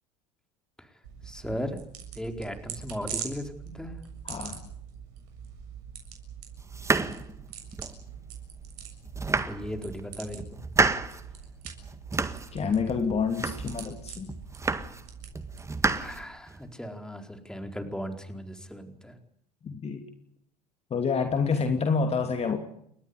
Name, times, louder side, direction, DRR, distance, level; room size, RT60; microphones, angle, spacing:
sound 1, 1.0-16.2, right 8 dB, 65° right, 7.2 m, -43 dB
voice 1, 1.2-1.8 2.2-4.0 9.4-10.6 15.9-19.2, equal, 5° left, 5 dB, 4.5 m, -37 dB
voice 2, 4.2-4.6 12.5-14.3 19.6-20.1 20.9-22.6, left 5 dB, 30° left, 6 dB, 2.9 m, -28 dB
sound 2, 6.7-8.0 8.5-8.6 9.0-10.0 10.4-11.2 11.6-12.6 12.9-13.9 14.3-15.1 15.3-16.7, right 3 dB, 15° right, 1.8 m, -30 dB
30.0 x 13.5 x 10.0 m, 0.70 s
hypercardioid pair, 75°, 21 cm